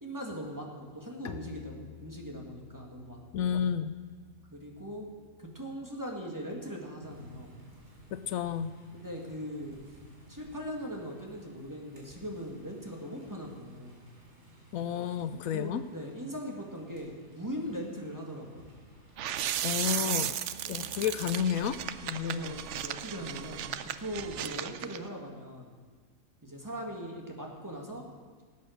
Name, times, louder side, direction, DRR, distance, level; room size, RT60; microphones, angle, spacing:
voice 1, 0.0-3.5 4.5-5.1 5.4-7.5 8.9-9.8 10.3-14.0 15.1-15.2 15.5-18.6 22.2-23.7 24.0-25.7 26.4-28.1, equal, 15° right, 0 dB, 1.9 m, -40 dB
Bowed string instrument, 1.2-6.8, left 8 dB, 50° left, 0.7 m, -51 dB
voice 2, 3.3-4.0 8.1-8.8 14.7-15.8 19.6-20.4 20.7-22.5, left 8 dB, 80° left, 12 dB, 1.0 m, -31 dB
sound 1, 7.0-22.5, right 1 dB, 50° right, 3.2 m, -56 dB
sound 2, 19.2-25.0, right 10 dB, 65° right, 0.8 m, -35 dB
18.0 x 8.3 x 6.5 m, 1.5 s
omnidirectional pair, 1.5 m